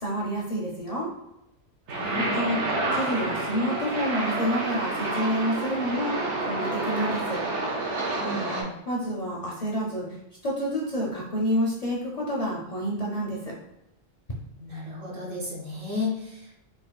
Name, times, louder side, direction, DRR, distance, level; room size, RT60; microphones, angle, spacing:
voice 1, 0.0-1.1 2.1-2.7 2.9-7.4 8.9-10.0 10.4-13.5, equal, 45° left, -4 dB, 0.6 m, -28 dB
voice 2, 1.9-2.6 8.2-8.8 14.6-16.6, left 2 dB, 55° right, -4 dB, 1.0 m, -34 dB
sound 1, 1.9-8.6, right 2 dB, 85° right, 1.0 m, -29 dB
4.2 x 2.6 x 2.3 m, 0.85 s
omnidirectional pair, 1.1 m